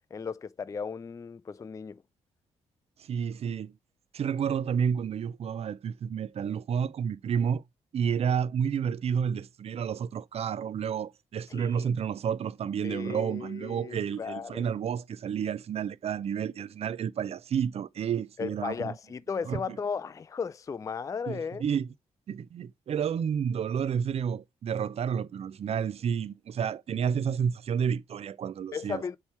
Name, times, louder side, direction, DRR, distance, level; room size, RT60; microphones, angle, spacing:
voice 1, 0.1-2.0 11.5-11.9 12.8-14.7 18.4-21.6 28.7-29.2, left 6 dB, 25° left, 0.3 m, -35 dB
voice 2, 3.0-3.7 4.1-7.6 7.9-18.9 19.5-19.8 21.3-21.9 22.3-29.0, right 7 dB, 55° right, 0.5 m, -30 dB
7.1 x 3.2 x 4.3 m
supercardioid pair, 65°, 13 cm